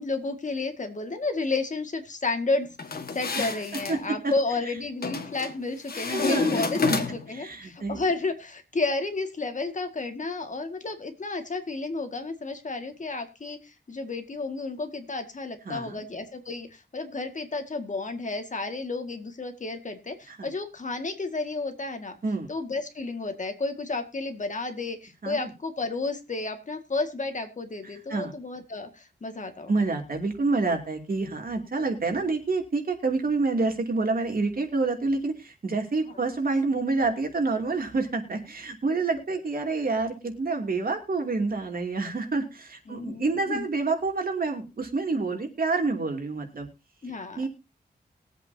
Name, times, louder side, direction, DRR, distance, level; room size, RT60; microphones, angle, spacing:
voice 1, 0.0-13.6 13.9-22.2 22.5-29.7 42.9-43.6 47.0-47.5, left 3 dB, 45° left, 6 dB, 1.9 m, -32 dB
Dryer lint screen, 2.8-4.0 5.0-5.5 5.9-7.4, left 4 dB, 60° left, 1.6 m, -29 dB
voice 2, 3.3-4.3 5.9-6.6 6.9-7.0 7.3-8.0 15.7-16.0 20.3-20.5 22.2-22.5 25.2-25.5 28.1-28.3 29.7-46.7 47.4-47.5, right 3 dB, 55° right, 4 dB, 2.7 m, -28 dB
21.5 x 8.2 x 2.8 m, 0.26 s
wide cardioid pair, 125°, 18 cm